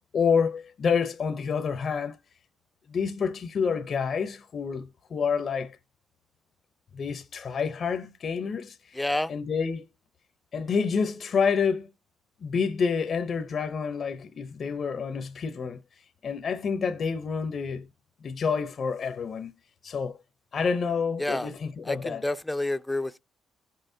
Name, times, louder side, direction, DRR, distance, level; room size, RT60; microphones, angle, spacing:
voice 1, 0.1-2.2 2.9-5.8 6.9-9.0 9.3-9.9 10.5-11.9 12.4-15.8 16.2-17.9 18.2-19.5 19.8-20.2 20.5-22.2, left 6 dB, 50° left, 0.7 m, -28 dB
voice 2, 8.9-9.3 21.2-21.5 21.9-23.2, left 1 dB, 10° left, 0.5 m, -29 dB
15.5 x 5.6 x 2.7 m
cardioid pair, 90°, 0 cm